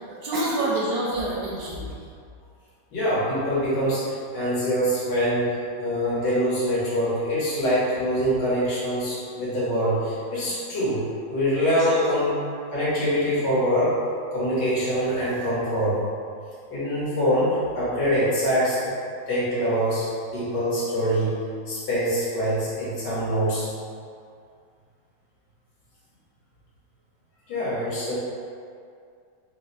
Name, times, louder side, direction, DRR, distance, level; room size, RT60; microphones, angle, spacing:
voice 1, 0.1-1.9 10.3-10.6 11.8-12.1, right 1 dB, 70° right, -4 dB, 0.9 m, -28 dB
voice 2, 2.9-5.5 5.8-12.4 12.7-14.0 14.3-16.0 16.7-18.9 19.3-23.7 27.5-28.2, equal, 75° left, -9 dB, 1.8 m, -24 dB
3.9 x 2.1 x 4.0 m, 2.3 s
omnidirectional pair, 1.9 m